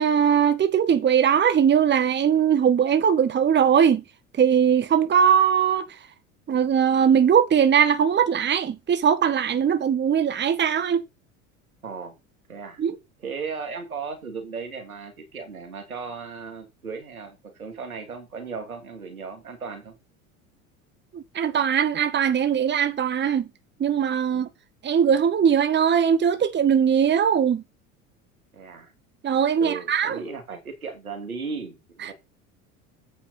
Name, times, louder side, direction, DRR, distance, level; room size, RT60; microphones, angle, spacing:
voice 1, 0.0-4.0 4.4-5.9 6.5-11.0 12.8-13.0 21.1-23.5 23.8-24.5 24.8-27.6 29.2-30.2, right 8 dB, 25° right, 1.3 m, -20 dB
voice 2, 11.8-12.1 12.5-12.8 13.2-19.9 24.3-24.5 28.5-28.9 29.6-32.1, right 5 dB, 85° right, 2.8 m, -36 dB
8.3 x 5.6 x 5.6 m
hypercardioid pair, 75°, 41 cm